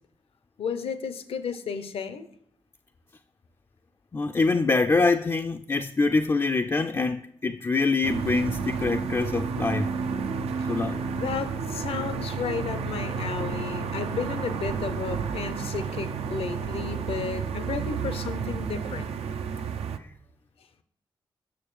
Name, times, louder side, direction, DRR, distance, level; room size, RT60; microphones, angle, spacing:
voice 1, 0.6-2.3 10.6-10.7 11.2-19.1, left 6 dB, 70° left, 0.6 m, -33 dB
voice 2, 4.1-9.9 10.7-11.0 20.0-20.1, left 3 dB, 25° left, 0.3 m, -25 dB
sound 1, 8.0-20.0, right 5 dB, 75° right, 0.4 m, -31 dB
7.0 x 6.2 x 3.1 m
supercardioid pair, 40°, 10 cm